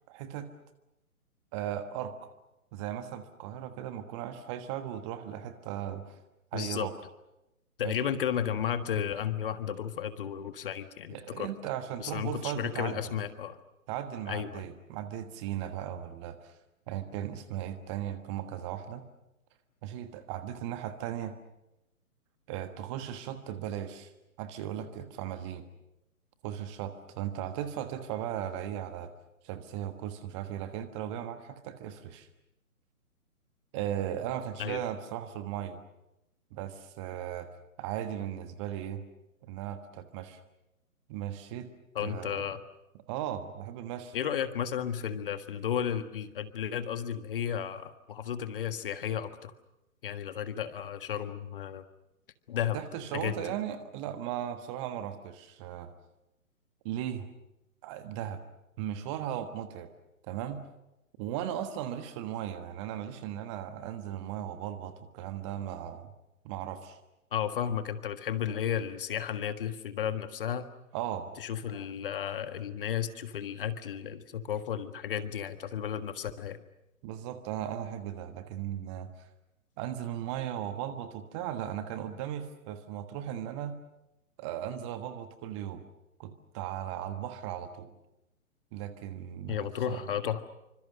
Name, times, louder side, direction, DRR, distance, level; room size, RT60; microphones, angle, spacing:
voice 1, 0.1-0.5 1.5-2.3 2.7-6.2 6.5-6.9 7.8-8.1 11.1-13.0 13.9-16.5 16.9-19.0 19.8-21.3 22.5-24.1 24.4-25.6 26.4-29.1 29.4-32.3 33.7-35.8 36.5-37.5 37.8-39.0 39.4-40.4 41.1-41.7 42.0-42.5 43.1-44.2 52.7-55.9 56.8-57.3 57.8-58.4 58.8-59.9 60.3-60.6 61.2-66.1 66.4-67.0 70.9-71.3 77.0-79.1 79.8-83.7 84.4-85.8 86.2-87.9 88.7-90.0, right 10 dB, 20° right, 10 dB, 1.4 m, -37 dB
voice 2, 6.5-6.9 7.8-11.5 12.0-13.6 14.3-14.7 34.6-34.8 41.9-42.6 44.1-49.5 50.0-51.8 52.5-52.8 53.1-53.5 67.3-70.6 71.4-76.6 89.5-90.4, left 9 dB, 40° left, 11 dB, 1.6 m, -33 dB
27.5 x 25.5 x 6.4 m, 0.92 s
figure-of-eight pair, 135°, 43 cm